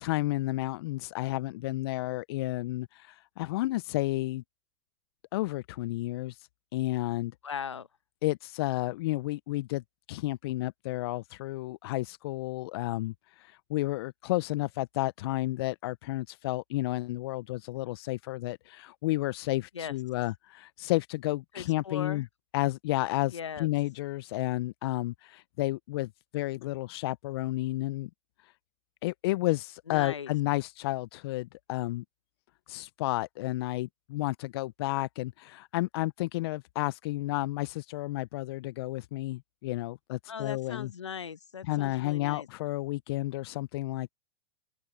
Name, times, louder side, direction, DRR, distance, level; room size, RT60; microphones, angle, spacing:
voice 1, 0.0-4.4 5.3-6.4 6.7-7.3 8.2-9.8 10.1-22.3 22.5-28.1 29.0-32.0 32.7-40.9 41.6-44.1, left 18 dB, 60° left, 0.9 m, -31 dB
voice 2, 7.4-7.9 19.7-19.9 21.5-22.2 23.3-23.7 29.9-30.3 40.3-42.5, left 7 dB, 85° left, 1.2 m, -38 dB
open air
hypercardioid pair, 95°, 15 cm